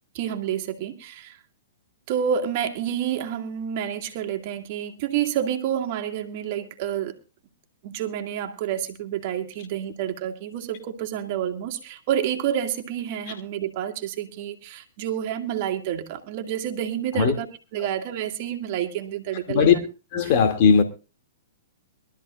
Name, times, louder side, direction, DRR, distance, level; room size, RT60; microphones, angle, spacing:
voice 1, 0.1-1.4 2.1-7.2 7.8-17.5 17.7-19.8, right 9 dB, 45° right, 2.1 m, -29 dB
voice 2, 20.1-20.8, left 6 dB, 45° left, 2.4 m, -17 dB
22.5 x 13.0 x 2.4 m
hypercardioid pair, 125°, 0 cm